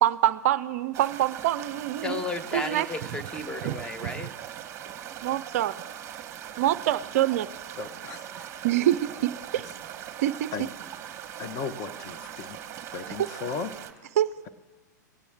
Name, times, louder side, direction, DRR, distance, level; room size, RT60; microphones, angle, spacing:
voice 1, 0.0-2.2 2.5-2.9 3.6-4.3 5.2-5.8 6.6-7.5 8.6-9.7 10.2-10.5 14.2-14.3, right 12 dB, 50° right, 14 dB, 0.4 m, -25 dB
sound 1, 0.9-13.9, right 10 dB, 30° right, 1.1 m, -40 dB
voice 2, 2.0-4.3, left 2 dB, 10° left, 8 dB, 1.0 m, -33 dB
voice 3, 7.8-8.5 10.5-10.7 11.4-12.6 12.9-13.7, left 5 dB, 35° left, 9 dB, 0.9 m, -36 dB
20.0 x 8.3 x 3.5 m, 1.3 s
figure-of-eight pair, 105°, 10 cm